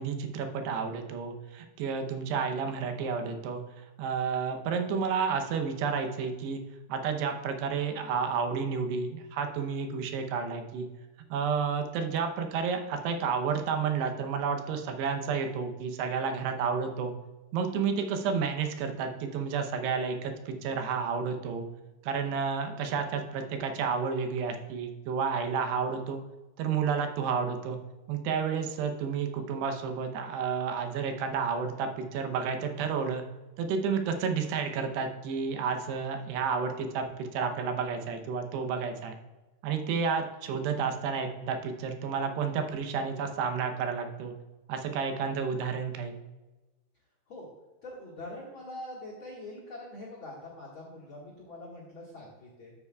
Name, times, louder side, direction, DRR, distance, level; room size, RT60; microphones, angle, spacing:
voice 1, 0.0-6.6 6.9-10.9 11.3-17.1 17.5-21.7 22.0-26.2 26.6-27.8 28.1-33.2 33.6-39.1 39.6-44.3 44.7-46.2, right 6 dB, 80° right, 5 dB, 2.9 m, -31 dB
voice 2, 47.8-52.7, left 1 dB, 50° left, -3 dB, 1.6 m, -44 dB
13.0 x 7.2 x 2.3 m, 1.1 s
omnidirectional pair, 4.8 m